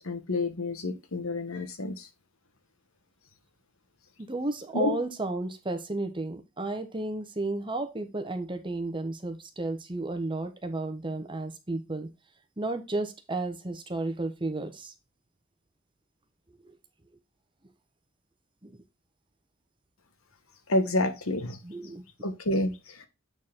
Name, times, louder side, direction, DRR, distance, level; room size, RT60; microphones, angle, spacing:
voice 1, 0.0-2.1 4.7-4.9 20.7-21.6 22.2-23.1, left 2 dB, 75° left, 1.5 m, -29 dB
voice 2, 4.3-12.1 12.6-14.9 16.6-16.7 18.6-18.7 21.6-22.0, right 2 dB, 25° right, 1.1 m, -33 dB
8.3 x 4.8 x 3.6 m
head